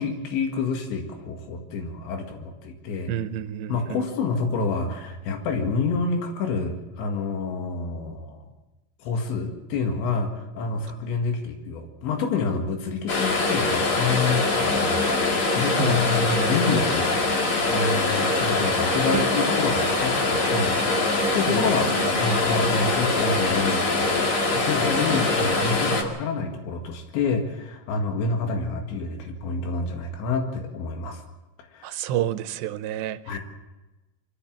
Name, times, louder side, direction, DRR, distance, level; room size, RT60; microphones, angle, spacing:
voice 1, 0.0-3.1 3.7-8.5 9.0-17.1 17.7-20.7 21.3-24.2 24.5-31.2 31.7-32.0 33.3-33.4, left 4 dB, 90° left, 3 dB, 4.2 m, -28 dB
voice 2, 3.1-3.8 15.8-16.2 19.1-19.2 21.6-21.7 22.0-22.4 31.8-33.2, right 11 dB, 85° right, 11 dB, 3.1 m, -29 dB
sound 1, 13.1-26.0, left 2 dB, 40° left, 2.5 m, -23 dB
24.0 x 15.5 x 7.4 m, 1.1 s
omnidirectional pair, 5.0 m